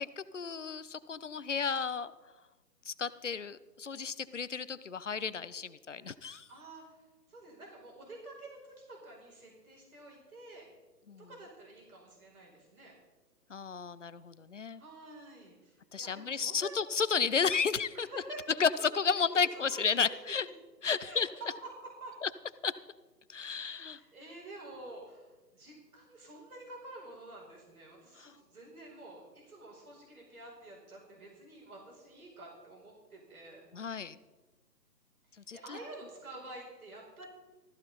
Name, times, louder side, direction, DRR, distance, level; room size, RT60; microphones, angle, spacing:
voice 1, 0.0-2.1 2.9-6.5 11.1-11.3 13.5-14.8 15.9-18.1 18.6-20.5 20.8-21.3 22.2-22.3 22.6-22.7 23.3-24.0 28.2-28.3 33.7-34.2 35.5-35.8, left 6 dB, 50° left, 16 dB, 0.6 m, -32 dB
voice 2, 6.5-7.0 7.3-10.6 11.2-12.9 14.8-16.8 17.9-18.4 19.1-19.4 19.7-20.2 21.0-22.2 23.5-33.6 35.3-37.3, right 2 dB, 60° right, -2 dB, 5.0 m, -49 dB
16.0 x 14.5 x 4.1 m, 1.2 s
figure-of-eight pair, 140°, 50 cm